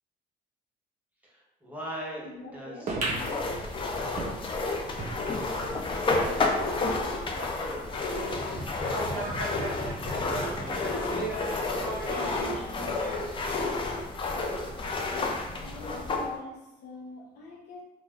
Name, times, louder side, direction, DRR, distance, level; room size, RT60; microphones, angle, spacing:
voice 1, 1.2-3.0 5.8-7.9 8.6-9.5 9.9-11.0 11.3-12.7, equal, 10° right, -6 dB, 0.9 m, -42 dB
voice 2, 2.2-3.5 15.6-17.8, left 2 dB, 85° left, -2 dB, 0.7 m, -44 dB
sound 1, 2.9-5.8 6.3-6.4 6.6-6.7 7.4-7.5, right 2 dB, 45° right, 0.7 m, -36 dB
sound 2, 3.1-16.3, left 3 dB, 30° left, 0.4 m, -31 dB
sound 3, 8.2-13.1, right 1 dB, 15° left, 1.3 m, -36 dB
2.4 x 2.1 x 3.4 m, 1.0 s
cardioid pair, 110°, 17 cm